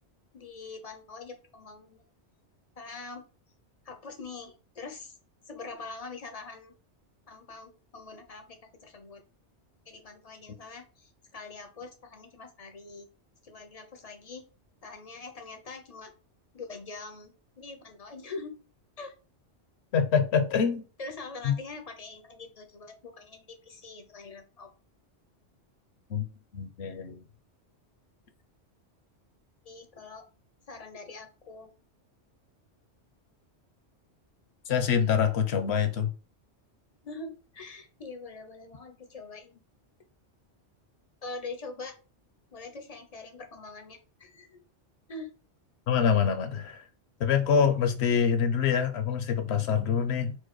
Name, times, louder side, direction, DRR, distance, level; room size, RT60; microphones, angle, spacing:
voice 1, 0.3-2.0 2.8-3.2 3.9-5.2 5.5-6.7 7.3-9.2 9.9-13.1 13.4-14.5 14.8-16.1 16.5-18.6 19.0-19.1 21.0-24.7 29.7-30.2 30.7-31.7 37.0-39.6 41.2-41.9 42.5-44.6 45.1-45.3, left 3 dB, 40° left, 0.6 m, -43 dB
voice 2, 19.9-20.8 21.4-21.5 26.1-26.3 26.5-27.2 34.7-36.1 45.9-46.8 47.2-50.4, left 7 dB, 70° left, 1.0 m, -25 dB
4.5 x 2.2 x 4.6 m
omnidirectional pair, 1.2 m